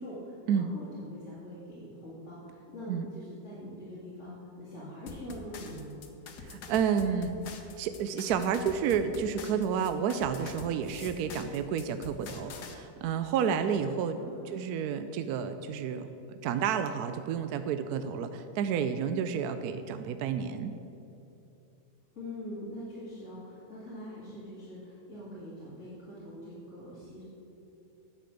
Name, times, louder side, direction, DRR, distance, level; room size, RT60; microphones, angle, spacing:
voice 1, 0.0-5.9 14.1-14.7 22.1-27.2, left 1 dB, 45° left, -10 dB, 2.5 m, -43 dB
sound 1, 5.1-12.8, left 4 dB, 75° left, 1.4 m, -45 dB
voice 2, 6.4-7.4 7.8-14.2 14.5-20.7, right 7 dB, 75° right, 9 dB, 1.0 m, -30 dB
9.9 x 5.9 x 8.3 m, 2.8 s
omnidirectional pair, 1.8 m